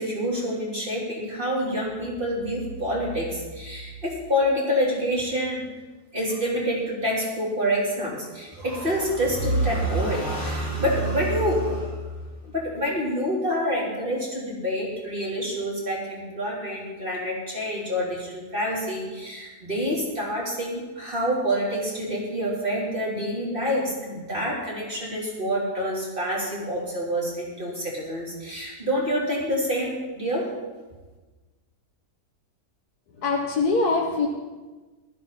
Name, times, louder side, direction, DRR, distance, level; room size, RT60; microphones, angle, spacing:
voice 1, 0.0-5.6 6.1-12.0 12.4-30.5, equal, 30° right, -5 dB, 4.0 m, -27 dB
voice 2, 33.1-34.3, left 3 dB, 70° left, -1 dB, 1.7 m, -23 dB
15.0 x 12.5 x 4.2 m, 1.3 s
omnidirectional pair, 1.7 m